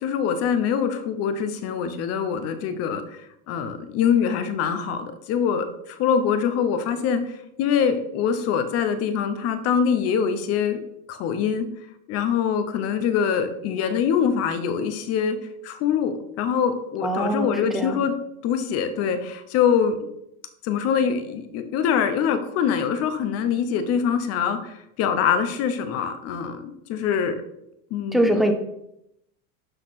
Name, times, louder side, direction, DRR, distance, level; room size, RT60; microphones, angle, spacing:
voice 1, 0.0-3.0 3.5-7.2 7.6-10.8 11.1-11.6 12.1-15.4 15.6-18.1 18.4-20.0 20.6-27.3 27.9-28.4, left 7 dB, 35° left, 9 dB, 0.9 m, -24 dB
voice 2, 17.0-18.0 28.1-28.5, right 1 dB, ahead, 5 dB, 0.4 m, -23 dB
12.0 x 4.1 x 4.2 m, 0.81 s
supercardioid pair, 160°, 40 cm